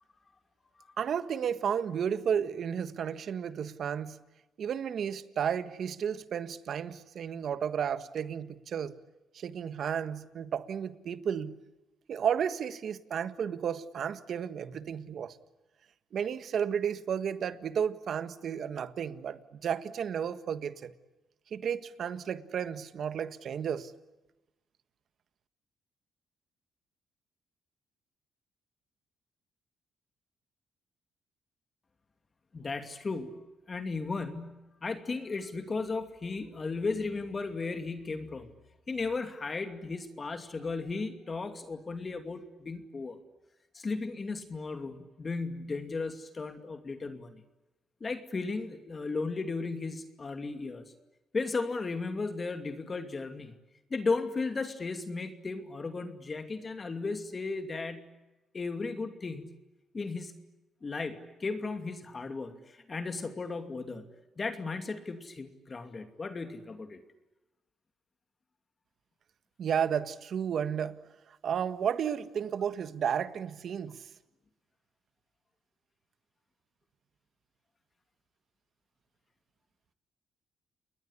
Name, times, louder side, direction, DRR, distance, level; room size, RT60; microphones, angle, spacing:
voice 1, 1.0-4.2 4.6-9.0 9.3-11.6 12.1-15.4 16.1-20.9 21.5-23.9 69.6-71.0 71.3-74.1, right 8 dB, 60° right, 1.5 m, -33 dB
voice 2, 32.5-33.3 33.7-38.5 38.9-43.2 43.7-47.4 48.0-50.8 51.3-53.6 53.9-58.1 58.5-59.5 59.9-60.4 60.8-64.0 64.4-67.0, left 3 dB, 35° left, 2.6 m, -35 dB
29.0 x 21.0 x 9.8 m
cardioid pair, 90°, 0 cm